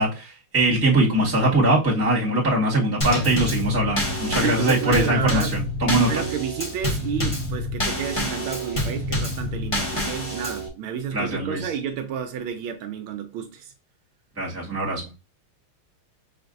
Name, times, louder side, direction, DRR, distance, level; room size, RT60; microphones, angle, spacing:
voice 1, 0.0-6.2 11.1-11.7 14.4-15.1, right 1 dB, 10° right, 1.5 m, -22 dB
Drum kit / Snare drum / Bass drum, 3.0-10.7, left 1 dB, 20° left, 0.8 m, -27 dB
voice 2, 4.3-5.6 5.9-13.7, right 8 dB, 80° right, 1.4 m, -31 dB
5.8 x 3.3 x 2.5 m
omnidirectional pair, 2.3 m